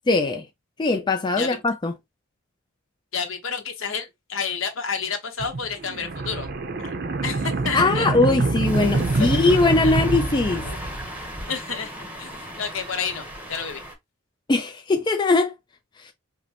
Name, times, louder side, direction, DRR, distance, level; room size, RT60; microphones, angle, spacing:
voice 1, 0.1-0.5 0.8-1.9 7.7-10.7 14.5-15.5 16.0-16.1, left 3 dB, 20° left, 0.3 m, -21 dB
voice 2, 3.1-6.5 6.8-6.9 7.2-8.1 9.1-9.4 9.8-9.9 10.6-10.8 11.5-13.8, left 6 dB, 70° left, 1.0 m, -30 dB
sound 1, 5.4-11.2, right 3 dB, 50° right, 0.6 m, -26 dB
sound 2, 8.6-13.9, equal, 10° right, 0.8 m, -36 dB
5.1 x 2.1 x 2.8 m
head